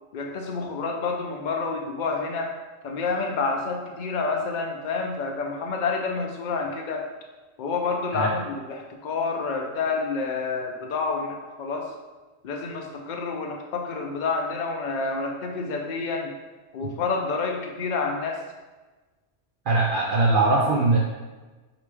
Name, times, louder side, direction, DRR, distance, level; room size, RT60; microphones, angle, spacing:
voice 1, 0.1-2.5 2.8-7.1 7.6-11.9 12.4-16.3 16.7-18.4, left 4 dB, 50° left, 2 dB, 0.6 m, -28 dB
voice 2, 19.7-21.0, right 2 dB, 55° right, -3 dB, 0.7 m, -21 dB
4.6 x 2.9 x 3.4 m, 1.3 s
omnidirectional pair, 1.2 m